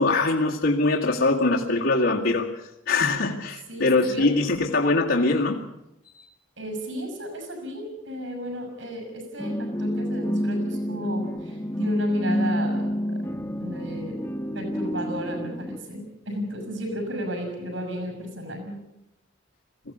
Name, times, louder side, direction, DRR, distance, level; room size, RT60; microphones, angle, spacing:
voice 1, 0.0-2.5 2.9-5.6 6.1-6.2, left 3 dB, 85° left, -4 dB, 2.1 m, -22 dB
voice 2, 3.7-4.3 4.6-4.7 6.6-13.2 13.6-14.2 14.5-18.8, equal, 75° right, 5 dB, 7.0 m, -34 dB
sound 1, 9.4-15.8, equal, 10° left, 0.9 m, -28 dB
21.5 x 16.0 x 8.6 m, 0.87 s
head